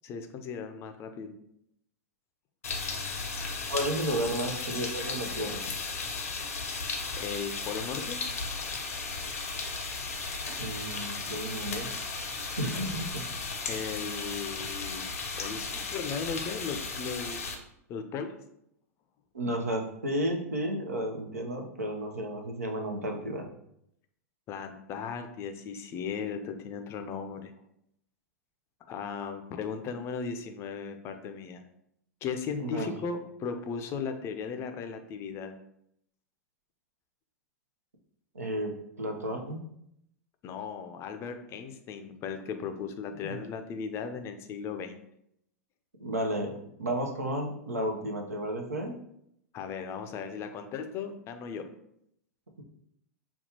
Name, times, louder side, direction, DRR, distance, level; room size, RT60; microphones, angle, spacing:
voice 1, 0.0-1.3 7.2-8.2 13.7-15.1 15.4-17.4 17.9-18.4 24.5-27.5 28.9-31.6 32.2-35.5 40.4-45.0 49.5-51.7, left 6 dB, 35° left, 7 dB, 0.5 m, -37 dB
sound 1, 2.6-17.5, left 4 dB, 75° left, 0.6 m, -35 dB
voice 2, 3.7-5.6 10.6-11.9 12.6-13.3 19.3-23.5 32.6-32.9 38.3-39.6 43.3-43.4 46.0-48.9, right 1 dB, 80° right, 3 dB, 0.7 m, -32 dB
5.3 x 2.3 x 2.8 m, 0.75 s
figure-of-eight pair, 95°, 8 cm